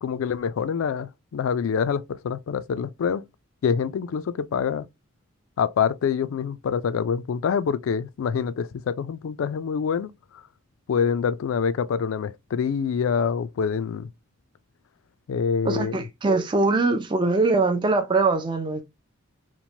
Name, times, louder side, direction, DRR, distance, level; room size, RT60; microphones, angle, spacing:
voice 1, 0.0-3.2 3.6-4.9 5.6-10.1 10.9-14.1 15.3-16.0, left 6 dB, 75° left, 0.3 m, -26 dB
voice 2, 15.6-18.8, right 3 dB, 20° right, 0.3 m, -22 dB
3.0 x 2.1 x 2.6 m
head